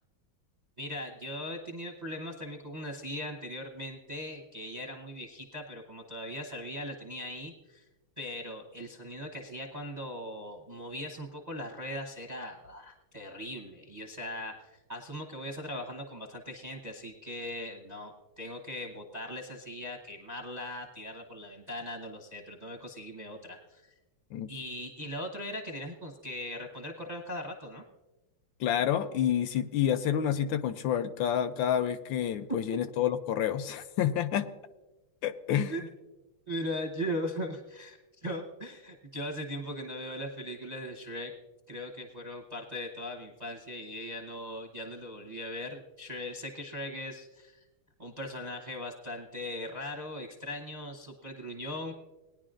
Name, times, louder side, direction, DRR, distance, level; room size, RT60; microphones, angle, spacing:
voice 1, 0.8-7.8 8.2-23.9 24.5-27.8 35.7-35.8 36.5-41.3 41.7-47.6 48.0-51.9, left 1 dB, 40° right, 1 dB, 0.6 m, -39 dB
voice 2, 28.6-34.5 35.2-35.9, left 9 dB, 75° left, 11 dB, 1.2 m, -29 dB
20.0 x 10.5 x 2.5 m, 1.1 s
omnidirectional pair, 2.3 m